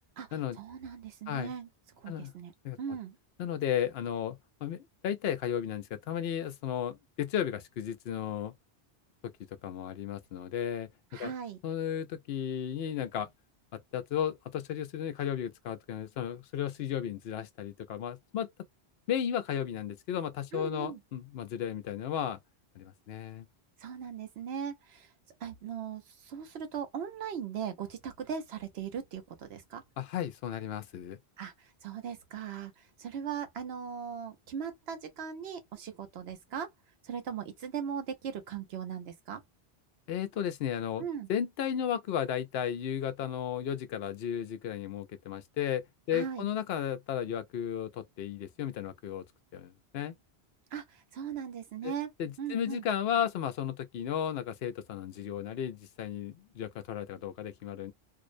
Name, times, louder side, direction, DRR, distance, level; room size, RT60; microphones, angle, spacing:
voice 1, 0.6-1.7 2.0-2.5 2.8-3.2 11.1-11.6 20.5-21.0 23.8-25.1 25.4-29.8 31.4-31.5 31.8-32.7 33.0-36.7 37.0-39.4 41.0-41.3 46.1-46.5 50.7-50.8 51.1-52.1 52.4-52.8, right 7 dB, 85° right, 1.0 m, -38 dB
voice 2, 3.4-8.5 9.6-11.3 11.6-13.3 13.7-18.5 19.1-22.4 22.8-23.5 30.0-31.2 40.1-49.2 49.5-50.1 51.8-51.9 52.2-57.9, left 9 dB, 75° left, 0.8 m, -34 dB
2.5 x 2.1 x 2.4 m
omnidirectional pair, 1.1 m